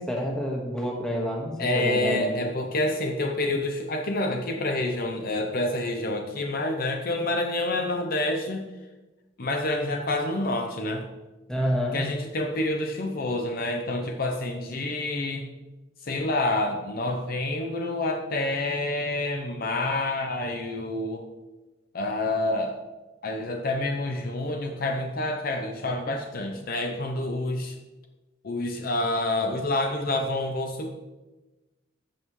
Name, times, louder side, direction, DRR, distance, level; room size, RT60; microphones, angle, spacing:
voice 1, 0.0-2.4 11.5-12.0, equal, 5° left, -2 dB, 1.6 m, -28 dB
voice 2, 1.6-8.7 9.4-11.1 11.9-15.5 16.0-21.3 21.9-22.8 23.2-27.8 28.4-30.9, left 2 dB, 50° left, 4 dB, 0.7 m, -28 dB
14.0 x 5.5 x 3.1 m, 1.1 s
head